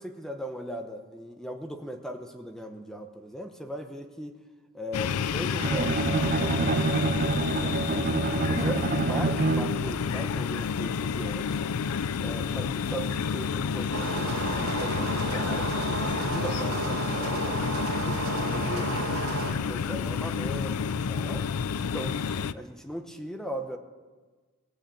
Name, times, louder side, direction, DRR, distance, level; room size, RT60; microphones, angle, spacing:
voice 1, 0.0-4.4 4.7-5.9 6.2-6.9 7.5-11.8 12.2-17.4 18.0-19.0 19.6-21.5 21.8-23.8, equal, ahead, 6 dB, 0.8 m, -39 dB
sound 1, 4.9-22.5, left 6 dB, 75° left, 0.4 m, -30 dB
Bowed string instrument, 5.6-10.0, right 3 dB, 40° right, 0.4 m, -27 dB
sound 2, 13.9-19.5, right 3 dB, 90° right, 2.4 m, -32 dB
19.0 x 6.4 x 8.5 m, 1.4 s
head